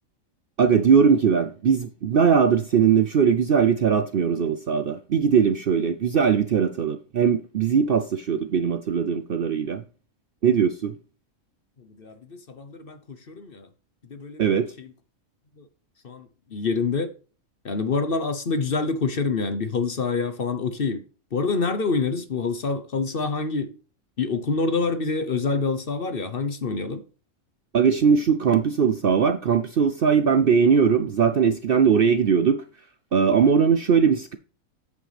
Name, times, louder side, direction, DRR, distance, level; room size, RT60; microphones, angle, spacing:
voice 1, 0.6-9.8 10.4-10.9 14.4-14.7 27.7-32.6 33.1-34.4, right 6 dB, 55° right, 0.7 m, -20 dB
voice 2, 11.8-13.7 14.1-14.9 15.6-15.7 16.0-17.1 17.6-21.0 21.3-23.7 24.2-27.0, left 4 dB, 45° left, 1.0 m, -27 dB
8.3 x 7.7 x 3.4 m
omnidirectional pair, 1.5 m